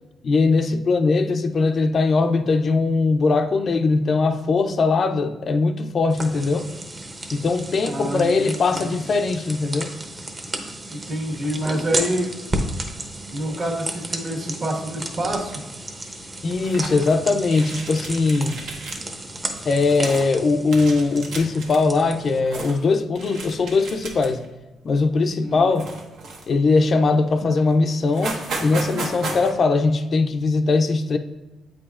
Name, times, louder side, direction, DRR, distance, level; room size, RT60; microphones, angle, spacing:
voice 1, 0.2-6.7 7.3-9.9 16.4-18.6 19.6-24.4 24.8-25.9 26.5-31.2, left 3 dB, 45° left, 0.4 m, -20 dB
sound 1, 6.1-22.4, right 1 dB, 25° right, 0.8 m, -33 dB
voice 2, 7.8-8.9 10.9-12.3 13.3-15.6 25.4-25.7, right 1 dB, 50° right, 1.3 m, -27 dB
sound 2, 16.5-17.2 17.5-19.0 19.4-20.3 20.7-21.8 22.2-22.8 23.1-24.5 24.9-25.1 25.7-26.7 27.3-27.4 27.7-27.8 28.0-29.5, right 3 dB, 80° right, 1.0 m, -34 dB
8.0 x 4.9 x 2.4 m
cardioid pair, 90°, 0 cm